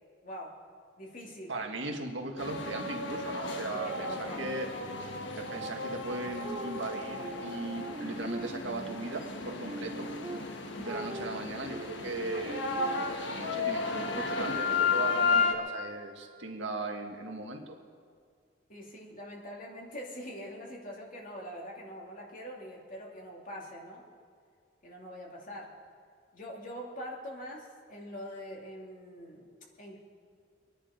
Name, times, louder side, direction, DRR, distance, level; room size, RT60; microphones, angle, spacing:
voice 1, 0.2-0.5 1.0-1.5 3.7-4.5 18.7-24.0 24.8-25.7 26.3-29.5 29.8-30.0, equal, 45° left, -1 dB, 2.6 m, -43 dB
voice 2, 1.5-4.1 4.4-4.7 5.0-5.1 5.4-10.1 10.8-12.6 13.3-17.7, right 2 dB, 75° right, 2 dB, 1.8 m, -38 dB
sound 1, 2.4-15.5, left 4 dB, 70° left, 1.4 m, -33 dB
sound 2, 6.4-9.0 9.4-13.4, right 1 dB, 25° right, 0.9 m, -42 dB
24.5 x 10.0 x 5.1 m, 2.1 s
head